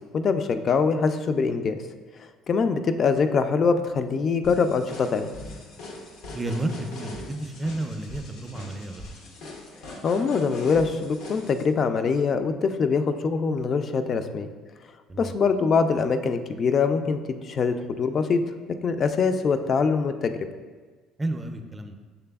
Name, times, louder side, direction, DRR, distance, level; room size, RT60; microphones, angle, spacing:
voice 1, 0.1-1.8 2.2-5.3 10.0-14.5 15.2-18.4 18.8-20.3, left 5 dB, 45° left, 9 dB, 0.3 m, -23 dB
sound 1, 4.4-11.6, left 2 dB, 75° left, 0.7 m, -41 dB
voice 2, 6.3-9.0 15.1-15.3 21.2-22.0, right 2 dB, 20° right, 6 dB, 0.4 m, -31 dB
6.8 x 3.3 x 2.3 m, 1.4 s
supercardioid pair, 80°, 0 cm